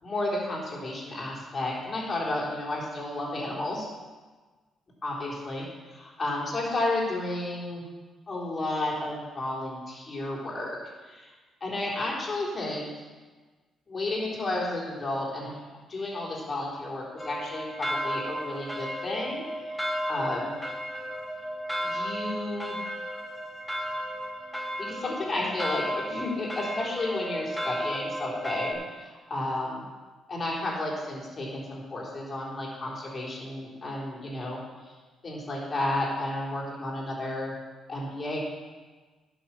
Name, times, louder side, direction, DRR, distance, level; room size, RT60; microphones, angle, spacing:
voice 1, 0.0-3.9 5.0-7.9 8.3-11.3 11.6-12.9 13.9-15.6 15.9-20.6 21.8-22.8 24.8-29.8 30.3-34.9 35.2-37.5 37.9-38.4, left 2 dB, 35° left, -4 dB, 3.9 m, -32 dB
sound 1, 17.2-28.7, equal, 5° left, 1.5 m, -34 dB
11.5 x 6.3 x 6.0 m, 1.3 s
cardioid pair, 90°, 0 cm